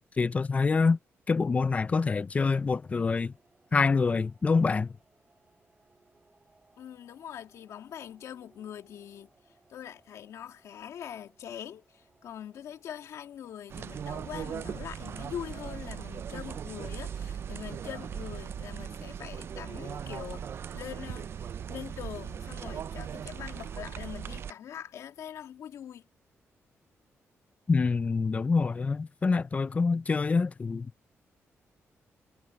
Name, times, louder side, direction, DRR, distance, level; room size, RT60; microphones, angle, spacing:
voice 1, 0.2-1.0 1.3-3.3 3.7-4.9 27.7-30.9, left 4 dB, 25° left, 0.5 m, -26 dB
sound 1, 3.3-21.8, right 3 dB, 20° right, 4.4 m, -68 dB
voice 2, 6.8-9.3 9.7-20.5 20.7-21.3 21.7-26.1, left 10 dB, 85° left, 2.6 m, -43 dB
sound 2, 13.7-24.5, right 8 dB, 55° right, 0.5 m, -39 dB
cardioid pair, 130°, 5 cm